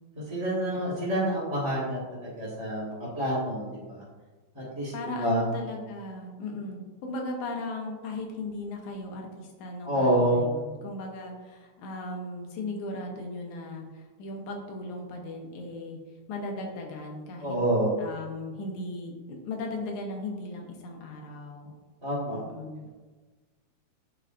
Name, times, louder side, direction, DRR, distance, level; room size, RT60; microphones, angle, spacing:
voice 1, 0.3-2.9 3.1-4.0 4.7-4.9 5.2-5.5 9.8-10.4 17.4-17.9 22.0-22.4, right 1 dB, 10° right, -9 dB, 1.3 m, -27 dB
voice 2, 4.9-16.0 16.3-17.6 18.0-21.7 22.3-22.9, left 2 dB, 80° left, 1 dB, 2.4 m, -37 dB
11.5 x 4.4 x 2.6 m, 1.3 s
omnidirectional pair, 3.4 m